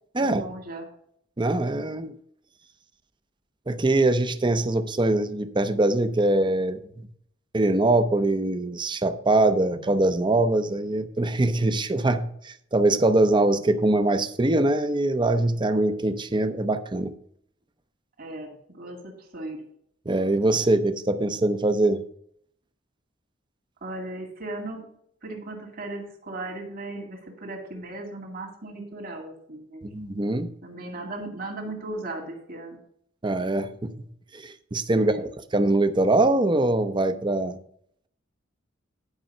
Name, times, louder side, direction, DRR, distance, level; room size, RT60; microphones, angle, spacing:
voice 1, 0.2-0.9 18.2-19.6 23.8-24.9 25.2-29.9 30.6-32.8 35.0-35.3, right 2 dB, 50° right, 2.3 m, -37 dB
voice 2, 1.4-2.1 3.7-7.1 7.5-17.1 20.1-22.0 29.9-30.5 33.2-34.1 34.3-35.3 35.5-37.6, right 2 dB, 25° right, 0.6 m, -23 dB
10.5 x 5.3 x 5.4 m
head